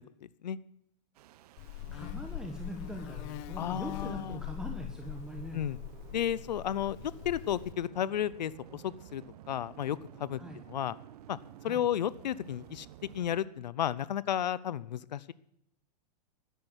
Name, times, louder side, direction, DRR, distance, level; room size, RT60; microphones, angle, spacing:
voice 1, 0.2-0.6 3.6-4.4 5.5-5.8 6.1-9.2 9.5-10.4 10.7-11.0 11.3-11.4 11.6-12.9 13.1-15.3, left 10 dB, 90° left, 19 dB, 0.7 m, -33 dB
sound 1, 1.1-13.4, right 11 dB, 65° right, 0.9 m, -52 dB
Buzz, 1.6-7.7, left 15 dB, 45° left, 0.7 m, -42 dB
voice 2, 1.6-5.6 10.4-10.6 11.6-11.8, equal, 5° right, 3 dB, 1.4 m, -42 dB
13.5 x 10.5 x 8.1 m, 0.75 s
hypercardioid pair, 130°, 21 cm